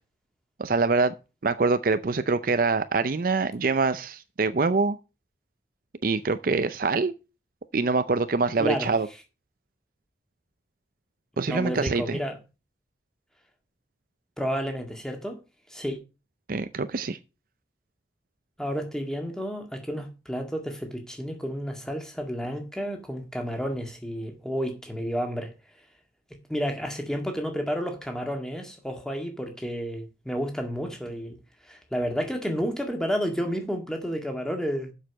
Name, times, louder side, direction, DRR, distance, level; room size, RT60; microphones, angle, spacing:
voice 1, 0.6-1.1 1.4-5.0 6.0-7.1 7.7-9.1 11.4-12.2 16.5-17.2, right 4 dB, 50° right, 0.5 m, -24 dB
voice 2, 8.6-8.9 11.5-12.4 14.4-15.4 15.7-16.0 18.6-25.5 26.5-31.4 31.6-34.9, equal, 5° left, 1.8 m, -31 dB
7.6 x 6.5 x 6.3 m
head